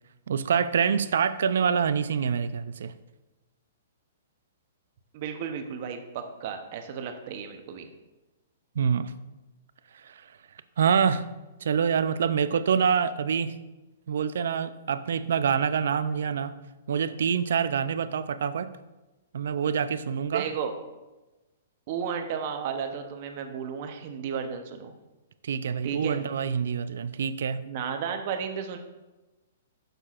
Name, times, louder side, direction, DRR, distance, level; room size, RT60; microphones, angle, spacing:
voice 1, 0.3-2.9 8.8-9.1 10.0-10.2 10.8-11.3 11.6-13.5 14.1-16.5 16.9-18.7 19.3-20.4 25.4-27.6, right 7 dB, 70° right, 13 dB, 0.4 m, -26 dB
voice 2, 5.1-7.9 20.3-20.8 21.9-24.9 25.8-26.2 27.7-28.8, right 7 dB, 40° right, 6 dB, 0.7 m, -33 dB
9.9 x 6.6 x 2.4 m, 1.1 s
hypercardioid pair, 170°, 0 cm